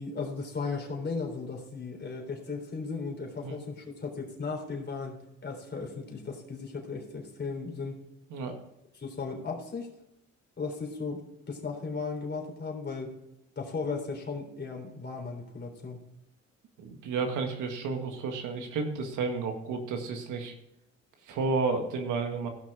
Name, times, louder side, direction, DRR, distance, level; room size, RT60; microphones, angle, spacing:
voice 1, 0.0-8.0 9.0-9.9 10.6-13.1 13.6-16.0, left 4 dB, 35° left, 1 dB, 3.6 m, -36 dB
voice 2, 16.8-20.5 21.2-22.5, right 4 dB, 85° right, 4 dB, 1.8 m, -31 dB
16.0 x 6.3 x 4.8 m, 0.83 s
cardioid pair, 90°, 30 cm